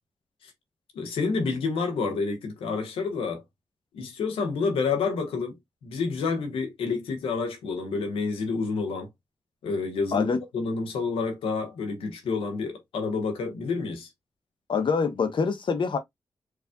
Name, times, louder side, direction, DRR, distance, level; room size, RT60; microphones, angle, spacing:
voice 1, 0.9-3.4 3.9-5.6 5.8-9.1 9.6-14.1, left 4 dB, 90° left, 1.0 m, -29 dB
voice 2, 14.7-16.0, left 5 dB, 60° left, 0.8 m, -25 dB
4.7 x 2.4 x 2.2 m
supercardioid pair, 45°, 9 cm